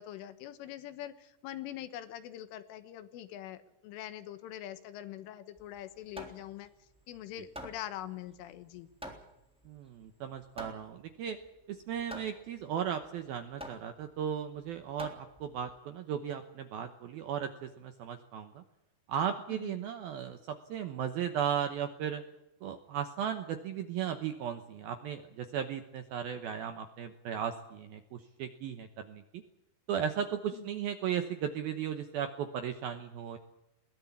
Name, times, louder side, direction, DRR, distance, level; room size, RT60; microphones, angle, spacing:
voice 1, 0.0-6.7 7.1-8.9 19.5-19.8 30.5-30.7, left 12 dB, 80° left, 11 dB, 3.8 m, -43 dB
Hammer, 5.6-15.8, equal, ahead, 2.5 m, -49 dB
voice 2, 9.7-11.4 11.7-18.6 19.1-22.2 22.6-29.4 29.9-33.4, right 8 dB, 75° right, 8 dB, 2.2 m, -36 dB
22.0 x 17.5 x 8.5 m, 0.92 s
omnidirectional pair, 5.7 m